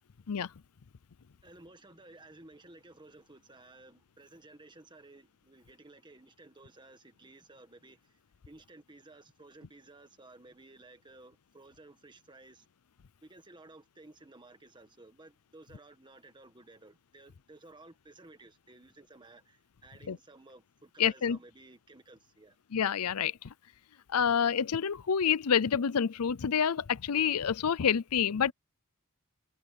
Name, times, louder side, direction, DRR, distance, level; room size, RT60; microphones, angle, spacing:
voice 1, 1.4-8.2 8.5-12.7 13.2-22.6, right 2 dB, 20° right, 1.6 m, -55 dB
voice 2, 21.0-21.4 22.7-23.5 24.1-28.5, left 7 dB, 85° left, 0.6 m, -28 dB
head